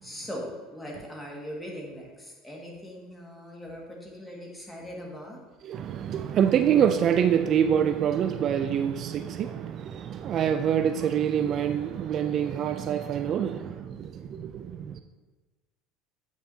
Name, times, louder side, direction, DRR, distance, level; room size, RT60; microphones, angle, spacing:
voice 1, 0.0-5.4, equal, 10° left, -2 dB, 1.9 m, -40 dB
voice 2, 5.6-15.0, right 9 dB, 50° right, 9 dB, 0.3 m, -26 dB
8.8 x 5.7 x 2.8 m, 1.2 s
hypercardioid pair, 85°, 0 cm